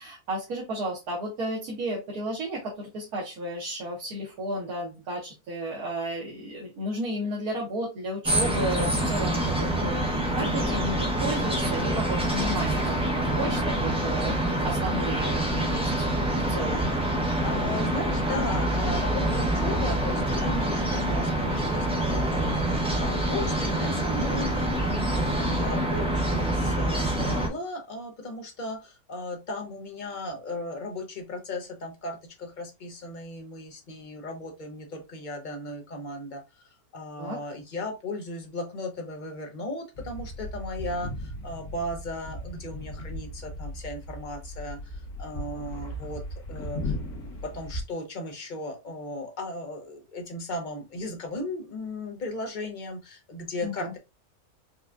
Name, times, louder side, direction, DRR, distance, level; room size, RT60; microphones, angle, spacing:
voice 1, 0.0-16.0 16.5-16.9 37.2-37.4 53.6-53.9, right 1 dB, 75° right, -4 dB, 1.5 m, -33 dB
sound 1, 8.2-27.5, right 1 dB, 10° right, 0.3 m, -26 dB
voice 2, 17.4-46.9 47.2-54.0, left 2 dB, 45° left, 2 dB, 0.6 m, -36 dB
sound 2, 39.9-47.8, left 1 dB, 80° left, 1.5 m, -37 dB
4.7 x 2.3 x 2.3 m, 0.25 s
omnidirectional pair, 1.6 m